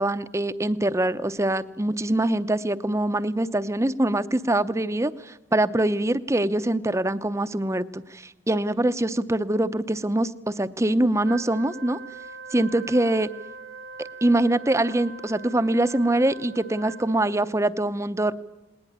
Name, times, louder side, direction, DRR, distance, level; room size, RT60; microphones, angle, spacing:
voice 1, 0.0-12.0 12.5-13.3 14.0-18.3, right 1 dB, 15° right, 12 dB, 0.7 m, -24 dB
Wind instrument woodwind instrument, 11.2-17.5, right 4 dB, 65° right, 1.6 m, -42 dB
20.0 x 19.5 x 8.7 m, 0.98 s
head